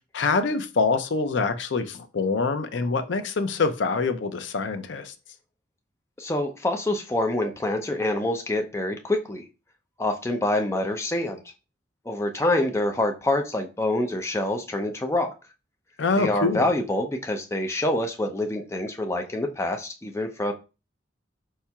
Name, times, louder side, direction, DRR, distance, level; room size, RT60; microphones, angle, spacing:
voice 1, 0.1-5.1 16.0-16.7, left 4 dB, 75° left, 0.5 m, -25 dB
voice 2, 6.2-9.5 10.0-11.4 12.1-15.3 16.2-20.5, left 1 dB, 15° left, 0.4 m, -26 dB
4.7 x 4.2 x 2.3 m
head